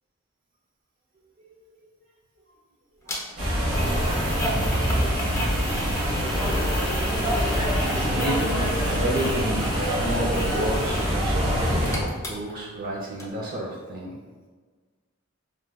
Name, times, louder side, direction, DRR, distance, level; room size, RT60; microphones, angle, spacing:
voice 1, 3.0-3.4 4.1-4.4 6.6-6.7 7.9-11.5 12.3-14.1, right 1 dB, 45° right, -3 dB, 0.4 m, -31 dB
sound 1, 3.1-3.2 3.7-11.2 11.5-12.9 13.2-13.3, equal, 15° left, 0.4 m, -34 dB
sound 2, 3.4-12.0, equal, 90° right, 1.2 m, -25 dB
2.9 x 2.1 x 3.4 m, 1.4 s
head